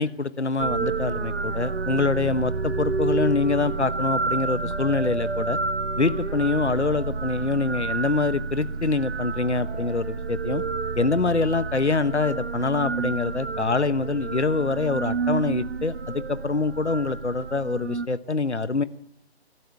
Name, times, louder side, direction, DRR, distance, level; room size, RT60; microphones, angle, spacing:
voice 1, 0.0-5.6 6.0-10.6 11.0-18.8, left 3 dB, 90° left, 15 dB, 1.0 m, -25 dB
sound 1, 0.6-18.1, right 4 dB, 70° right, 1.2 m, -29 dB
25.0 x 12.5 x 8.6 m, 0.82 s
figure-of-eight pair, 145°, 33 cm